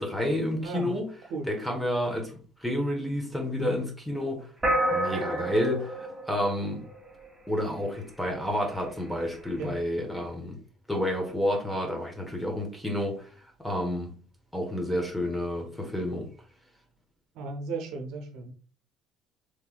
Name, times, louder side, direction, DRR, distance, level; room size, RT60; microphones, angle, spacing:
voice 1, 0.0-1.1 1.4-4.5 4.9-6.8 7.5-10.6 10.9-13.3 13.6-14.1 14.5-16.3, left 1 dB, ahead, 1.1 m, -30 dB
voice 2, 0.6-1.0 1.3-1.5 3.6-3.8 9.6-9.8 17.4-18.5, right 3 dB, 70° right, 0.7 m, -35 dB
sound 1, 4.6-7.3, right 1 dB, 15° right, 1.5 m, -28 dB
3.5 x 3.0 x 2.3 m
hypercardioid pair, 65°, 0 cm